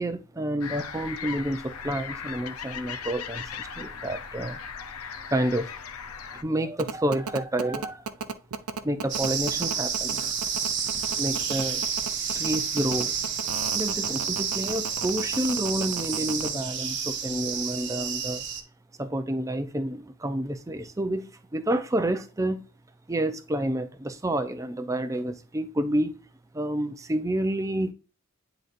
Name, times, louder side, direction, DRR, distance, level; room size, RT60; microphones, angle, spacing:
voice 1, 0.0-4.6 5.3-5.7 6.3-8.0 8.8-10.3 11.2-11.8 12.4-13.2 13.7-18.4 19.0-22.6 23.1-26.1 26.5-27.9, right 1 dB, 15° right, 0.5 m, -29 dB
sound 1, 0.6-6.4, left 6 dB, 80° left, 0.6 m, -38 dB
sound 2, 6.8-16.5, right 5 dB, 80° right, 0.6 m, -34 dB
sound 3, 9.1-18.6, right 7 dB, 55° right, 1.0 m, -30 dB
9.5 x 3.9 x 2.5 m
head